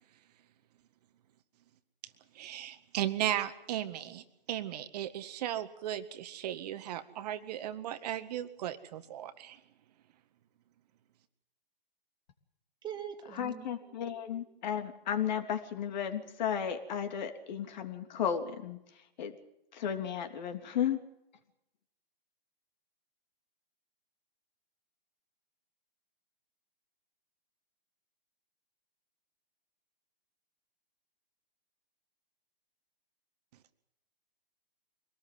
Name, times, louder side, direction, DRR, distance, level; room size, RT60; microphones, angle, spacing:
voice 1, 2.3-9.6, right 12 dB, 40° right, 9 dB, 1.8 m, -36 dB
voice 2, 12.8-14.4, right 9 dB, 15° right, 3 dB, 2.7 m, -44 dB
voice 3, 13.3-18.8 19.2-19.3 19.7-21.0, left 8 dB, 50° left, 7 dB, 3.3 m, -34 dB
24.5 x 19.0 x 7.9 m, 0.83 s
hypercardioid pair, 135°, 30 cm